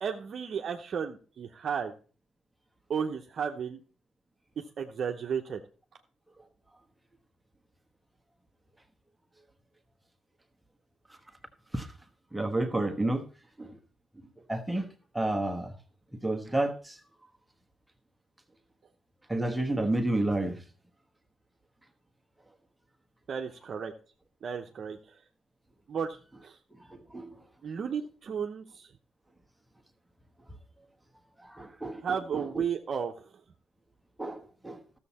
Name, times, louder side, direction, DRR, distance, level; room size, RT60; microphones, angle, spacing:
voice 1, 0.0-1.9 2.9-3.8 4.6-5.6 23.3-23.9 24.4-25.1 25.9-26.6 27.6-28.9 32.0-33.3, right 7 dB, 55° right, 3 dB, 0.8 m, -33 dB
voice 2, 12.3-13.2 13.6-13.7 14.5-14.9 15.1-15.7 16.2-17.0 19.3-20.6 26.9-27.3 31.4-32.6 34.2-34.8, right 1 dB, 10° right, 5 dB, 1.2 m, -30 dB
13.5 x 7.1 x 4.2 m, 0.37 s
cardioid pair, 90°, 0 cm